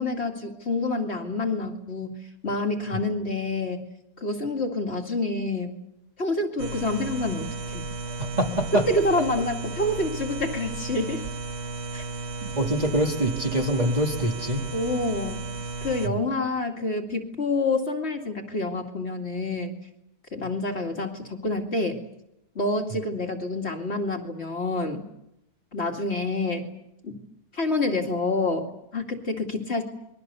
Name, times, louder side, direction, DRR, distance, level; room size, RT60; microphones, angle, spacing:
voice 1, 0.0-2.2 2.4-3.9 4.2-5.8 6.2-7.8 8.9-11.3 11.9-12.1 14.7-15.4 15.8-19.7 20.3-22.0 22.5-25.1 25.7-26.7 27.0-27.2 27.5-29.8, left 2 dB, 40° left, 3 dB, 2.6 m, -27 dB
sound 1, 6.6-16.1, right 3 dB, 45° right, 1.3 m, -34 dB
voice 2, 8.1-8.9 12.4-14.6 16.0-16.1, right 1 dB, 25° right, 2 dB, 2.0 m, -25 dB
28.5 x 22.5 x 6.9 m, 0.83 s
omnidirectional pair, 1.7 m